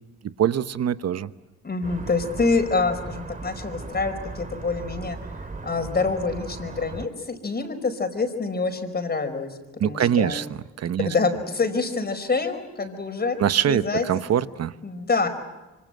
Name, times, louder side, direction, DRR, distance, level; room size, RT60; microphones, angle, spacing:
voice 1, 0.4-1.3 9.8-10.5 10.8-11.1 13.4-14.7, right 9 dB, 55° right, 13 dB, 1.1 m, -23 dB
voice 2, 1.6-5.2 5.6-10.4 11.0-13.4 13.7-14.1 14.8-15.3, left 4 dB, 30° left, 7 dB, 4.9 m, -26 dB
sound 1, 1.8-7.1, right 3 dB, 25° right, 3.0 m, -37 dB
26.5 x 25.0 x 8.0 m, 1.1 s
cardioid pair, 90°, 30 cm